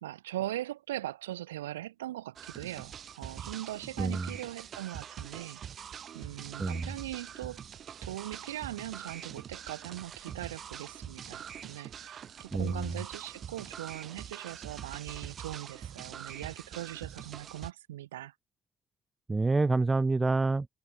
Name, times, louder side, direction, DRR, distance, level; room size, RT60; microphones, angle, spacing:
voice 1, 0.0-5.6 6.1-7.6 8.0-18.3, right 14 dB, 90° right, 1.4 m, -40 dB
sound 1, 2.4-17.7, right 8 dB, 55° right, 1.3 m, -44 dB
voice 2, 4.0-4.3 6.6-6.9 12.5-13.0 19.3-20.7, right 3 dB, 25° right, 0.3 m, -27 dB
hypercardioid pair, 50°, 0 cm